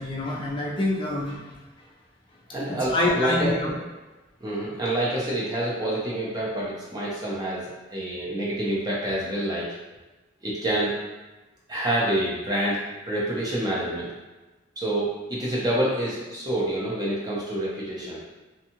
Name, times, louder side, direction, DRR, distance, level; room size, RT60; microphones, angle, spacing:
voice 1, 0.0-1.4 2.8-3.7, left 1 dB, 25° left, -4 dB, 0.4 m, -26 dB
voice 2, 2.5-3.5 4.4-9.7 10.4-10.9 11.7-14.1 14.8-18.2, right 1 dB, 20° right, -6 dB, 0.6 m, -27 dB
2.6 x 2.3 x 2.8 m, 1.1 s
head